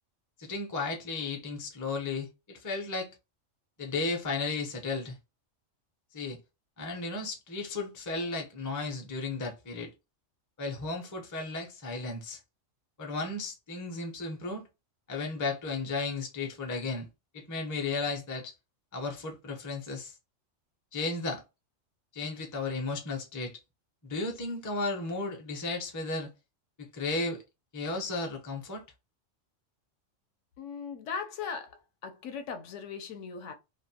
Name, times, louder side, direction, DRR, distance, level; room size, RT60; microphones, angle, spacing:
voice 1, 0.4-3.1 3.8-5.2 6.1-6.4 6.8-9.9 10.6-12.4 13.0-14.6 15.1-17.1 17.3-18.5 18.9-20.1 20.9-21.4 22.1-23.6 24.0-26.3 26.8-27.4 27.7-28.8, left 3 dB, 25° left, 0.4 m, -34 dB
voice 2, 30.6-31.7 32.0-33.5, left 6 dB, 75° left, 0.9 m, -38 dB
2.5 x 2.1 x 2.7 m
omnidirectional pair, 1.3 m